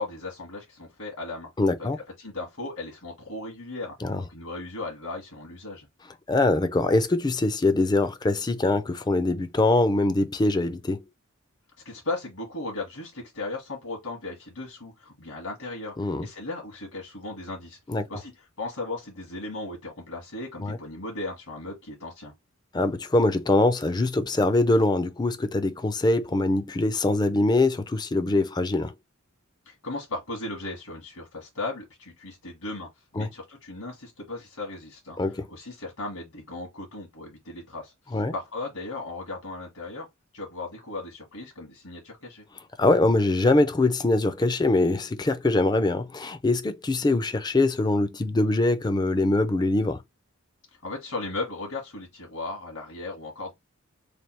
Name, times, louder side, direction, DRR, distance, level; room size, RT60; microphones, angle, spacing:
voice 1, 0.0-1.5 1.8-1.9 2.2-5.9 11.8-17.8 18.1-18.3 18.6-22.3 29.6-32.9 33.1-40.1 40.3-42.4 50.8-53.5, left 2 dB, 80° left, 1.4 m, -36 dB
voice 2, 1.6-2.0 4.0-4.2 6.3-11.0 16.0-16.3 17.9-18.1 20.6-20.8 22.7-28.9 33.2-33.3 35.2-35.5 38.1-38.3 42.8-50.0, left 2 dB, 20° left, 0.4 m, -23 dB
3.3 x 2.2 x 4.3 m
head